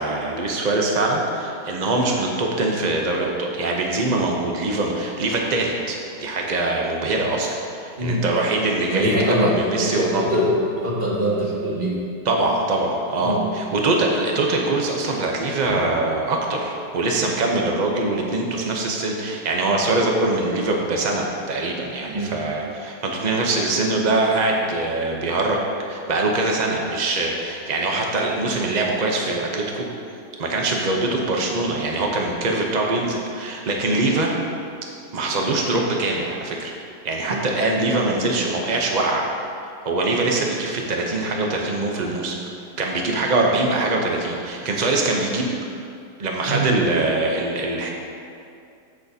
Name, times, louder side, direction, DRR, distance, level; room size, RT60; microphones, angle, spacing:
voice 1, 0.0-10.3 12.2-25.6 25.9-29.9 30.4-34.3 35.1-36.7 37.0-39.3 39.9-42.4 42.8-45.5 46.2-47.9, right 2 dB, 75° right, 0 dB, 0.4 m, -23 dB
voice 2, 8.9-12.0 13.2-13.4 22.1-22.3 37.3-37.4 46.5-46.7, equal, 30° right, -5 dB, 1.7 m, -23 dB
14.0 x 6.5 x 2.7 m, 2.5 s
omnidirectional pair, 1.9 m